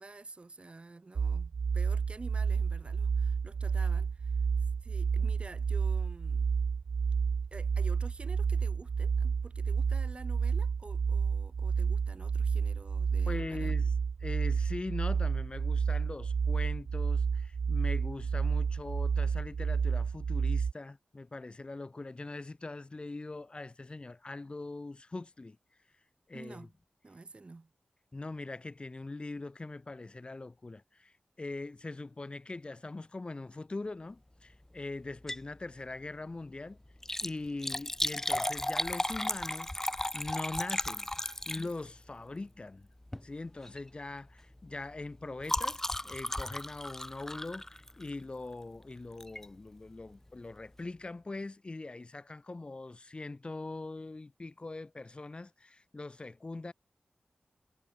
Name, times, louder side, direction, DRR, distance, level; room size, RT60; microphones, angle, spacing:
voice 1, 0.0-4.4 4.8-6.5 7.5-13.7 26.3-26.7 27.0-27.7, right 3 dB, 40° right, 2.7 m, -49 dB
sound 1, 1.2-20.7, right 6 dB, 75° right, 0.4 m, -30 dB
voice 2, 13.3-13.9 14.2-25.6 26.3-26.7 28.1-36.8 37.2-39.7 40.1-41.1 41.5-42.9 43.2-56.7, left 2 dB, 35° left, 4.2 m, -42 dB
Liquid, 35.1-35.5 35.9-36.0 36.9-42.0 43.0-43.3 43.6-43.9 44.2-48.3 49.2-49.5 50.0-50.1 50.3-50.4, left 1 dB, 15° left, 1.4 m, -35 dB
wide cardioid pair, 100°, 3 cm